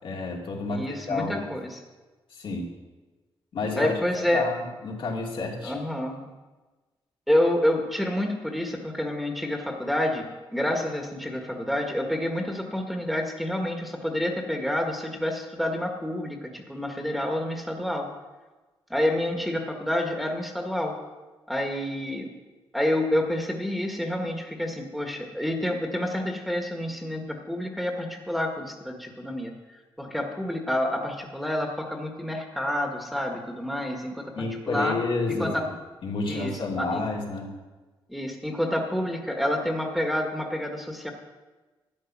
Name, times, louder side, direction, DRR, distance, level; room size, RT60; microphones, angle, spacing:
voice 1, 0.0-1.5 2.3-2.7 3.5-3.9 4.3-5.8 34.3-35.7 36.0-37.5, left 3 dB, 65° left, -1 dB, 2.7 m, -30 dB
voice 2, 0.7-1.8 3.8-4.5 5.6-6.3 7.3-18.1 18.9-21.0 21.5-22.3 22.7-35.0 35.3-35.6 36.3-37.0 38.1-41.1, left 1 dB, ahead, 1 dB, 1.7 m, -28 dB
12.5 x 8.8 x 6.0 m, 1.2 s
cardioid pair, 80°, 9 cm